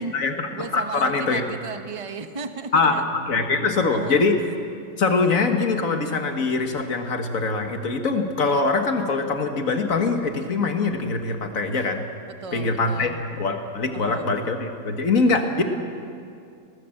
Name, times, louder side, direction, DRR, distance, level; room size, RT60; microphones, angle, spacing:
voice 1, 0.0-1.4 2.7-4.4 5.0-12.1 12.5-13.1 13.4-15.6, left 3 dB, 60° left, 5 dB, 1.9 m, -23 dB
voice 2, 0.5-3.0 3.9-4.2 12.3-13.2 13.9-14.3, right 5 dB, 25° right, 8 dB, 0.9 m, -34 dB
20.5 x 18.0 x 7.8 m, 2.4 s
omnidirectional pair, 1.6 m